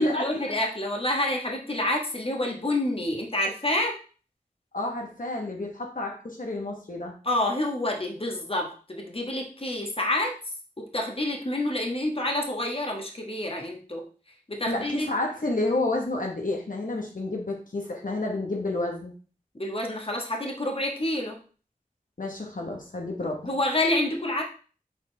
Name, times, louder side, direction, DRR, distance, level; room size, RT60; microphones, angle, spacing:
voice 1, 0.0-3.9 7.2-10.3 10.8-14.0 14.5-15.1 19.5-21.4 23.4-24.4, left 1 dB, 40° left, 1 dB, 1.3 m, -28 dB
voice 2, 4.7-7.1 14.7-19.1 22.2-23.5, left 2 dB, 60° left, 0 dB, 1.1 m, -30 dB
7.2 x 4.0 x 3.3 m, 0.39 s
wide cardioid pair, 45°, 15 cm